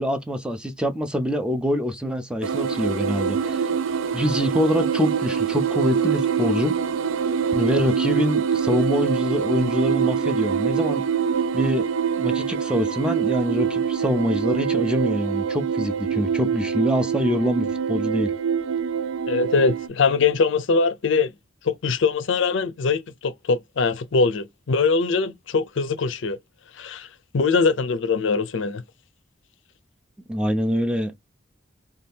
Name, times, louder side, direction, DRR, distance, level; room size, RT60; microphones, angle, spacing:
voice 1, 0.0-3.7 4.1-6.8 7.5-11.0 11.5-11.9 12.2-18.3 30.3-31.2, equal, 5° right, 0.4 m, -25 dB
sound 1, 2.4-19.9, right 7 dB, 85° right, 0.4 m, -24 dB
voice 2, 19.3-21.3 21.6-26.4 26.8-27.1 27.3-28.8, left 4 dB, 65° left, 0.5 m, -22 dB
2.7 x 2.3 x 3.4 m
head